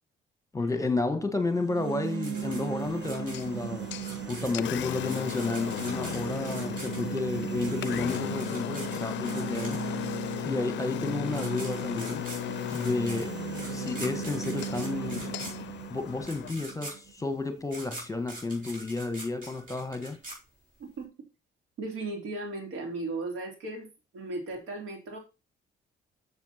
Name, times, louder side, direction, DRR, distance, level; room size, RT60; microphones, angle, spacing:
voice 1, 0.5-3.9 4.3-9.8 10.4-12.3 12.7-13.4 13.7-15.3 15.9-20.2, left 3 dB, 15° left, 1.3 m, -31 dB
sound 1, 1.4-17.5, right 9 dB, 65° right, 1.3 m, -38 dB
sound 2, 2.2-10.1 11.0-11.1 11.3-21.0, right 2 dB, 40° right, 4.5 m, -44 dB
Engine, 2.5-16.5, left 14 dB, 65° left, 0.4 m, -36 dB
voice 2, 21.8-25.2, right 2 dB, 85° right, 3.2 m, -36 dB
7.1 x 7.0 x 4.3 m
cardioid pair, 90°, 20 cm